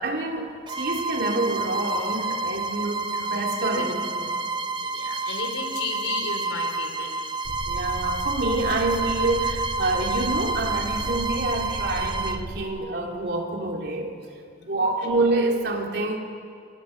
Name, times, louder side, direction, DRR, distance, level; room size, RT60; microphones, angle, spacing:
voice 1, 0.0-4.4 7.7-14.2 14.6-16.2, right 2 dB, 60° right, 1 dB, 3.3 m, -27 dB
Bowed string instrument, 0.7-12.5, right 3 dB, 25° right, 0.9 m, -29 dB
voice 2, 4.8-7.1 14.6-14.8, left 3 dB, 85° left, 3 dB, 4.9 m, -33 dB
sound 1, 7.5-12.7, right 1 dB, 80° right, 1.1 m, -35 dB
29.5 x 28.5 x 6.0 m, 2.3 s
head